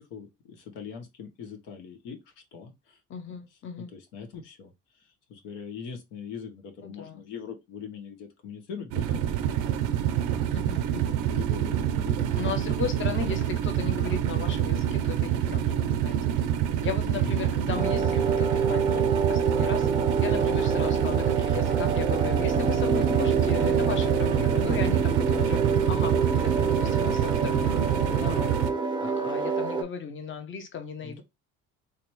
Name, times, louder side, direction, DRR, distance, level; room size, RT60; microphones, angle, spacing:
voice 1, 0.0-2.2 2.5-3.0 3.8-9.4 11.3-12.4 17.2-17.9 18.8-19.1 20.1-20.4 25.3-26.0 31.0-31.2, left 6 dB, 80° left, 1.1 m, -41 dB
voice 2, 3.1-3.9 6.8-7.2 10.5-11.2 12.3-16.2 16.8-25.6 25.9-28.6 29.0-31.2, left 6 dB, 40° left, 0.8 m, -36 dB
sound 1, 8.9-28.7, right 10 dB, 80° right, 0.6 m, -26 dB
sound 2, 17.7-29.8, right 5 dB, 15° right, 0.4 m, -27 dB
3.3 x 2.7 x 3.0 m
supercardioid pair, 90°, 31 cm